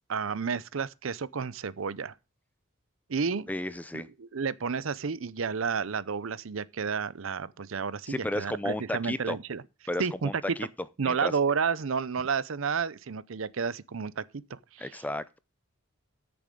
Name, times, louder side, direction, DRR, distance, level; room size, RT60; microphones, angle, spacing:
voice 1, 0.1-2.1 3.1-3.5 3.9-9.6 10.0-10.3 11.0-14.2 14.5-14.9, right 5 dB, 70° right, 0.6 m, -31 dB
voice 2, 3.5-4.1 8.1-9.4 9.9-10.7 11.0-11.3 14.8-15.4, left 1 dB, 5° left, 0.5 m, -33 dB
13.5 x 7.0 x 3.8 m
head